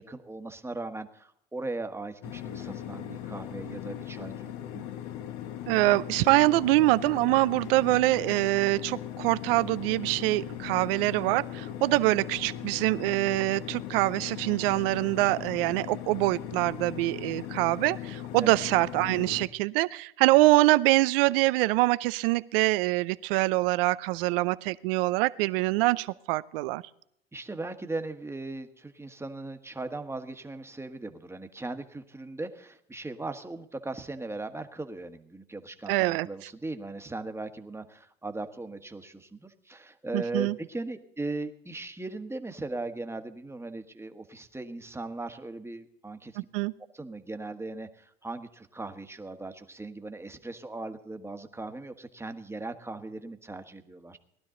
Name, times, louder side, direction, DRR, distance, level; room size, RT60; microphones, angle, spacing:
voice 1, 0.0-4.9 11.9-12.2 18.4-18.6 27.3-46.4 46.9-54.2, right 2 dB, 10° right, 7 dB, 1.4 m, -38 dB
sound 1, 2.2-19.5, left 11 dB, 65° left, 1.3 m, -39 dB
voice 2, 5.7-26.8 35.9-36.3 40.1-40.5 46.4-46.7, right 20 dB, 70° right, 18 dB, 0.6 m, -24 dB
19.0 x 12.0 x 3.9 m, 0.73 s
hypercardioid pair, 85°, 29 cm